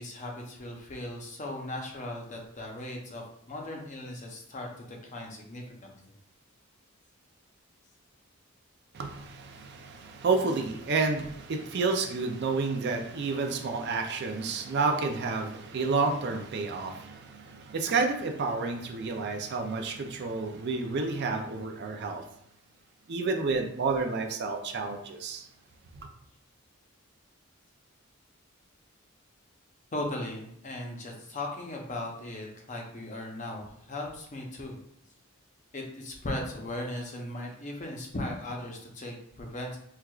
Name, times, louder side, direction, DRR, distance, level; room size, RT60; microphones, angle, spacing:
voice 1, 0.0-5.9 29.9-34.8 35.7-39.8, left 1 dB, 35° left, 1 dB, 0.6 m, -38 dB
voice 2, 8.9-22.2 23.1-25.4, right 4 dB, 55° right, 4 dB, 0.4 m, -30 dB
4.4 x 2.3 x 2.3 m, 0.72 s
head